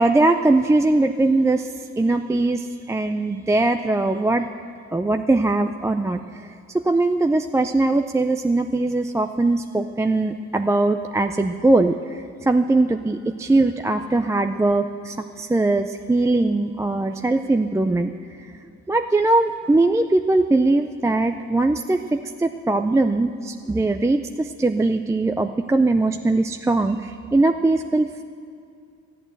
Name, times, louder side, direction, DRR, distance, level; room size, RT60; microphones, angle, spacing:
voice 1, 0.0-1.7 2.0-4.5 4.9-6.2 6.8-12.0 12.5-18.1 18.9-28.2, right 2 dB, 10° right, 6 dB, 0.4 m, -20 dB
14.0 x 8.6 x 7.9 m, 2.3 s
cardioid pair, 90°, 30 cm